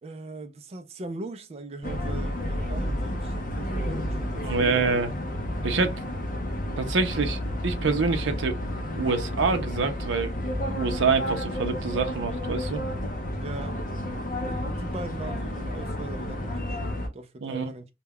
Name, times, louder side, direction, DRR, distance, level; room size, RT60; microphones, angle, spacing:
voice 1, 0.0-5.0 13.4-13.8 14.4-17.9, right 2 dB, 35° right, 0.4 m, -40 dB
sound 1, 1.8-17.1, left 1 dB, 45° left, 0.5 m, -31 dB
voice 2, 4.4-5.1 5.6-5.9 6.8-8.6 9.0-10.3 10.6-12.8 17.4-17.7, right 4 dB, 85° right, 0.5 m, -26 dB
2.3 x 2.1 x 3.4 m
head